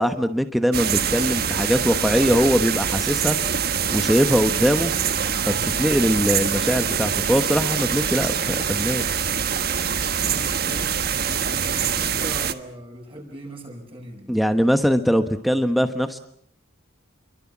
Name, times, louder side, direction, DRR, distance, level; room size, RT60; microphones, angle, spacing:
voice 1, 0.0-3.4 3.9-4.9 5.5-9.0 14.3-16.2, equal, ahead, 8 dB, 1.2 m, -21 dB
sound 1, 0.7-12.5, right 7 dB, 50° right, 1.4 m, -24 dB
voice 2, 10.2-14.5, right 1 dB, 25° right, 2 dB, 7.7 m, -40 dB
29.5 x 23.5 x 7.4 m, 0.65 s
head